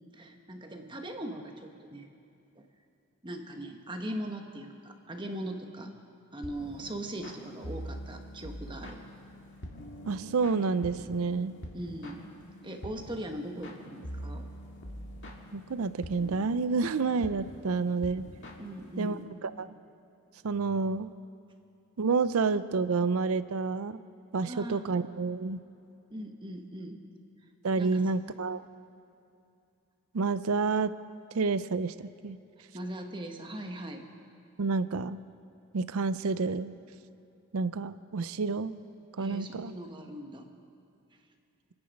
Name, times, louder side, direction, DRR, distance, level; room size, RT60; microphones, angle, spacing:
voice 1, 0.1-2.1 2.6-2.7 3.2-5.9 6.3-9.0 11.7-12.3 12.6-14.4 18.6-19.2 24.5-24.9 26.1-27.0 27.8-28.1 32.7-34.0 39.2-40.5, right 1 dB, 20° right, 4 dB, 1.2 m, -40 dB
sound 1, 6.4-19.2, equal, 55° left, 2.0 m, -44 dB
voice 2, 10.1-11.5 15.5-18.2 19.0-19.7 20.4-21.1 22.0-24.0 24.3-25.6 27.6-28.6 30.1-30.9 31.3-32.4 34.6-35.2 35.7-36.7 37.5-38.7 39.2-39.7, right 4 dB, 75° right, 14 dB, 0.5 m, -29 dB
27.5 x 9.8 x 5.3 m, 2.7 s
head